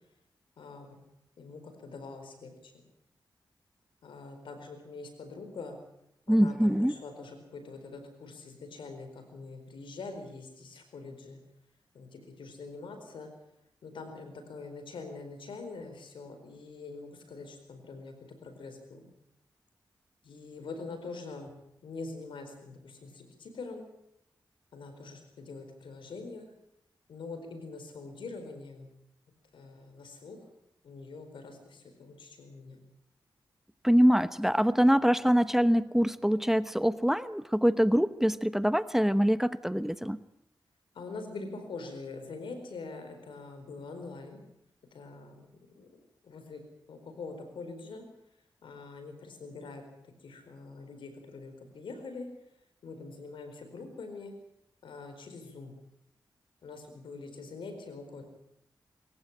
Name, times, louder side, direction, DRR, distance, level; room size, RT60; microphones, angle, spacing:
voice 1, 0.6-1.0 1.4-2.8 4.0-5.8 6.3-11.4 11.9-13.3 13.8-18.1 18.4-19.1 20.2-21.5 21.8-23.9 24.7-26.5 27.1-28.9 29.5-30.4 30.8-32.8 40.9-44.4 44.9-45.9 46.2-46.6 46.9-48.0 48.6-52.3 52.8-54.3 54.8-55.7 56.6-58.2, left 3 dB, 90° left, 7 dB, 4.4 m, -44 dB
voice 2, 6.3-6.9 33.8-40.2, equal, 5° right, 14 dB, 1.0 m, -24 dB
23.5 x 15.0 x 8.8 m, 0.78 s
cardioid pair, 45°, 8 cm